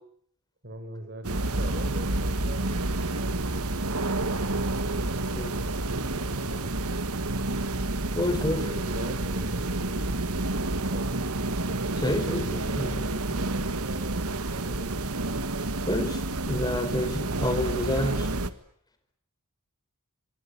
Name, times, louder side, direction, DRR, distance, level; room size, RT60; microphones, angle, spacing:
voice 1, 0.6-2.8 3.1-3.3 5.9-6.9 8.1-10.1 10.6-11.3 12.5-13.0 13.3-15.0, right 1 dB, 50° right, 7 dB, 5.9 m, -42 dB
sound 1, 1.2-18.5, right 2 dB, 80° right, 1.7 m, -29 dB
voice 2, 8.2-8.8 12.0-13.4 15.9-18.3, left 1 dB, 20° left, 8 dB, 4.6 m, -29 dB
24.5 x 23.0 x 9.9 m, 0.64 s
head